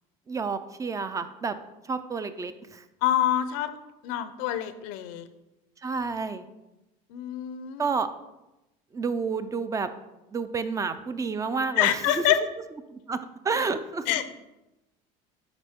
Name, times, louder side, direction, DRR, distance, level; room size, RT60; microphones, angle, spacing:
voice 1, 0.3-1.6 1.8-2.8 5.8-6.5 7.8-8.1 8.9-9.9 10.3-12.2 12.9-13.2 13.4-14.1, right 4 dB, 20° right, 11 dB, 0.4 m, -30 dB
voice 2, 3.0-3.7 4.0-5.3 7.1-7.8 11.8-12.4 14.1-14.2, left 12 dB, 80° left, 11 dB, 0.6 m, -26 dB
8.9 x 5.1 x 3.6 m, 0.98 s
cardioid pair, 120°, 17 cm